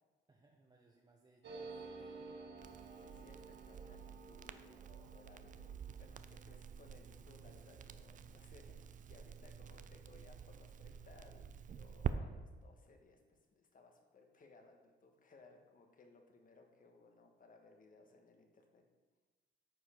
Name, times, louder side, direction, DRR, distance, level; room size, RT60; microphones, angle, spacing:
voice 1, 0.3-2.5, right 2 dB, 20° right, -1 dB, 0.8 m, -69 dB
sound 1, 1.4-10.6 10.9-11.0 11.2-11.8, right 4 dB, 60° right, 1.5 m, -55 dB
Crackle, 2.6-12.1, right 8 dB, 40° right, 0.4 m, -48 dB
voice 2, 3.0-18.8, left 3 dB, 45° left, 4 dB, 1.3 m, -63 dB
9.3 x 5.1 x 4.4 m, 1.3 s
cardioid pair, 90°, 20 cm